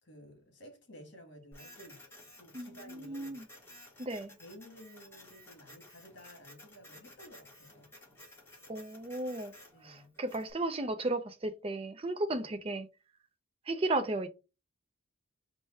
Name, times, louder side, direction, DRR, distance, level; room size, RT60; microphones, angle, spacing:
voice 1, 0.0-2.0 2.4-3.4 4.2-7.9 9.7-10.1 12.3-12.4, equal, 60° left, 1.7 m, -54 dB
Printer, 1.5-10.5, left 1 dB, 10° left, 1.3 m, -55 dB
voice 2, 2.5-3.5 4.0-4.3 8.7-9.5 9.8-12.9 13.7-14.3, right 2 dB, 25° right, 0.5 m, -34 dB
4.8 x 2.2 x 4.2 m
head